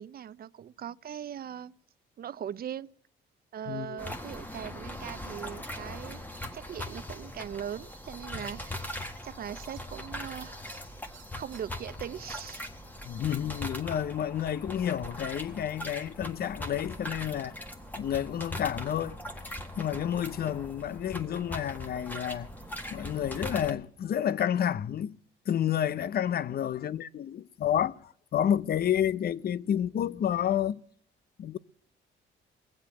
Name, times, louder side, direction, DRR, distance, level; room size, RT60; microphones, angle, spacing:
voice 1, 0.0-1.8 2.2-2.9 3.5-6.2 6.5-10.6 11.3-12.7, right 9 dB, 50° right, 0.5 m, -40 dB
voice 2, 3.7-4.0 13.0-17.5 18.0-19.2 19.8-22.5 22.9-25.2 25.5-30.8 31.4-31.6, left 10 dB, 50° left, 0.6 m, -30 dB
sound 1, 4.0-23.7, left 1 dB, 10° left, 1.6 m, -40 dB
sound 2, 8.5-8.6 9.6-9.8 10.7-10.8 11.1-11.6, right 11 dB, 85° right, 0.9 m, -54 dB
20.5 x 7.6 x 6.9 m
cardioid pair, 90°, 20 cm